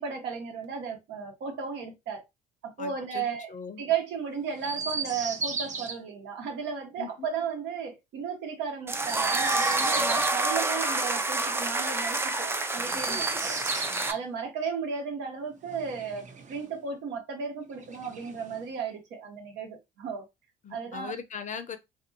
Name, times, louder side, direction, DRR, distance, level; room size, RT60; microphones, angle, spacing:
voice 1, 0.0-2.2 2.6-3.5 3.8-13.6 14.1-20.2 20.7-21.1, right 6 dB, 70° right, 1.1 m, -34 dB
voice 2, 2.8-3.8 7.0-7.1 12.9-13.4 13.7-13.9 20.6-21.8, left 6 dB, 40° left, 0.7 m, -40 dB
Chirp tweet, 4.6-6.0 9.0-10.4 12.8-14.2 15.6-16.7 17.8-18.7, right 4 dB, 40° right, 0.8 m, -35 dB
sound 1, 8.9-14.1, right 2 dB, 15° right, 0.5 m, -28 dB
2.6 x 2.5 x 2.7 m
hypercardioid pair, 65°, 19 cm